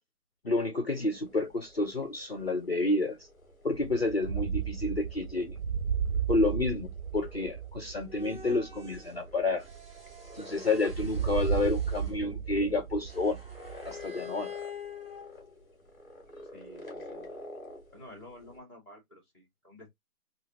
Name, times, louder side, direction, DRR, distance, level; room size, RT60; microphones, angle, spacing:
voice 1, 0.4-3.2 3.6-5.6 6.3-6.9 7.1-9.7 10.3-13.4 13.8-14.5, left 2 dB, 45° left, 0.5 m, -29 dB
sound 1, 0.9-18.6, left 1 dB, 15° left, 1.2 m, -51 dB
sound 2, 3.7-10.4 10.9-14.0, right 7 dB, 65° right, 0.6 m, -34 dB
sound 3, 8.0-9.2 9.6-12.1 13.1-15.7, left 6 dB, 40° right, 1.2 m, -46 dB
voice 2, 16.5-17.3 17.9-19.9, left 1 dB, 15° right, 1.1 m, -51 dB
3.0 x 2.4 x 2.8 m
hypercardioid pair, 175°, 45 cm